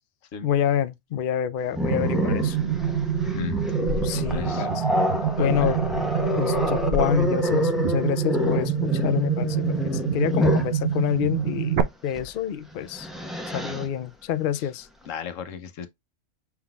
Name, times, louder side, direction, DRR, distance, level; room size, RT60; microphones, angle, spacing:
voice 1, 0.4-2.6 3.9-4.8 5.4-5.8 6.4-13.1 13.5-14.9, left 10 dB, 60° left, 0.6 m, -27 dB
Growling, 1.7-10.8 12.1-12.3 12.7-13.9, left 1 dB, ahead, 0.9 m, -27 dB
sound 1, 1.8-11.8, right 10 dB, 60° right, 0.9 m, -27 dB
voice 2, 3.3-3.6 4.1-4.7 5.4-5.8 15.1-15.9, left 9 dB, 85° left, 1.2 m, -35 dB
5.8 x 3.8 x 2.3 m
omnidirectional pair, 1.3 m